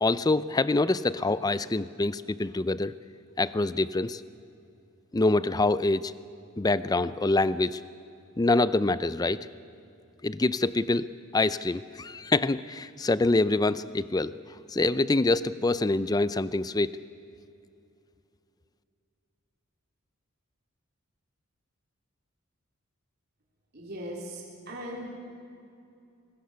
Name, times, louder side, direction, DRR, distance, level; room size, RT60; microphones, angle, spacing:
voice 1, 0.0-2.9 3.4-4.2 5.1-6.1 6.6-7.8 8.4-9.5 10.2-11.1 11.3-14.3 14.7-17.0, left 2 dB, 20° left, 16 dB, 0.5 m, -25 dB
voice 2, 23.7-25.1, equal, 50° right, -3 dB, 3.6 m, -39 dB
24.0 x 19.5 x 6.9 m, 2.7 s
head